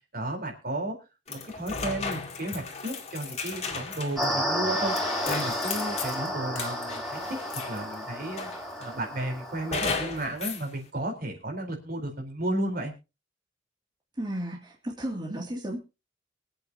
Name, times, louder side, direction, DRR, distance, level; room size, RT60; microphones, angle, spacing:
voice 1, 0.1-1.0 1.3-4.9 5.2-7.4 7.7-8.5 8.8-12.9, right 1 dB, 55° right, 2 dB, 4.2 m, -33 dB
sound 1, 1.3-7.9 8.4-9.0 9.7-10.7, left 4 dB, 35° left, 2.2 m, -35 dB
sound 2, 4.2-9.7, equal, ahead, 3.3 m, -32 dB
voice 2, 14.1-15.8, right 1 dB, 25° right, -2 dB, 2.7 m, -33 dB
24.0 x 8.8 x 2.9 m, 0.29 s
head